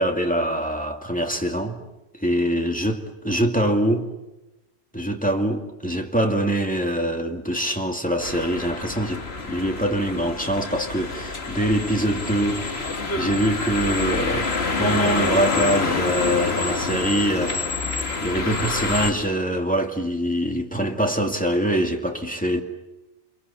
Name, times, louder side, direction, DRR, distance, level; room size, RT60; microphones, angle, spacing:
voice 1, 0.0-1.8 2.2-3.0 3.2-4.1 4.9-12.9 13.2-14.5 14.8-17.6 18.2-22.6, right 1 dB, 5° left, 2.3 m, -24 dB
sound 1, 8.2-19.1, left 3 dB, 70° left, 2.1 m, -27 dB
28.5 x 23.0 x 8.4 m
omnidirectional pair, 1.1 m